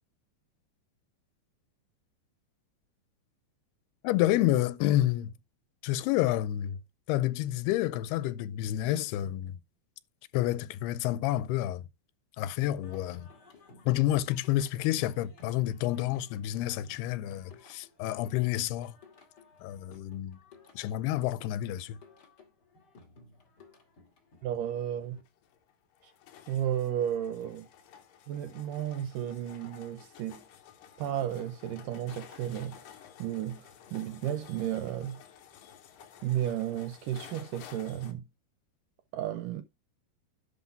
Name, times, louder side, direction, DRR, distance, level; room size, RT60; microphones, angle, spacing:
voice 1, 4.0-5.3 5.8-6.8 7.1-9.5 10.3-11.8 12.4-13.3 13.9-19.0 19.6-20.4 20.7-22.0, left 14 dB, 90° left, 2.7 m, -29 dB
Singing, 12.8-25.2, left 3 dB, 30° left, 2.3 m, -57 dB
voice 2, 24.4-25.2 26.0-26.1 26.5-27.7 28.3-30.4 31.0-32.9 33.2-35.2 36.2-38.2 39.1-39.6, right 11 dB, 75° right, 2.0 m, -33 dB
sound 1, 25.3-38.1, left 9 dB, 65° left, 2.7 m, -53 dB
11.0 x 4.1 x 5.8 m
omnidirectional pair, 4.5 m